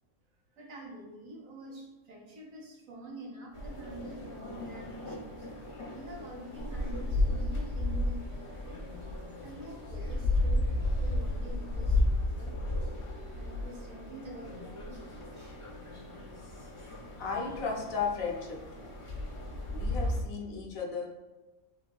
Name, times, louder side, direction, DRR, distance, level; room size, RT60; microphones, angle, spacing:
voice 1, 0.5-5.5 5.9-8.8 9.4-12.6 13.3-15.5, right 1 dB, 65° right, 0 dB, 1.3 m, -47 dB
sound 1, 3.5-20.2, left 2 dB, 40° left, 0.5 m, -34 dB
sound 2, 6.6-12.0, equal, 5° left, 0.9 m, -41 dB
voice 2, 17.2-18.9 19.7-21.1, left 5 dB, 70° left, -1 dB, 1.2 m, -35 dB
7.2 x 2.7 x 2.3 m, 1.1 s
omnidirectional pair, 1.5 m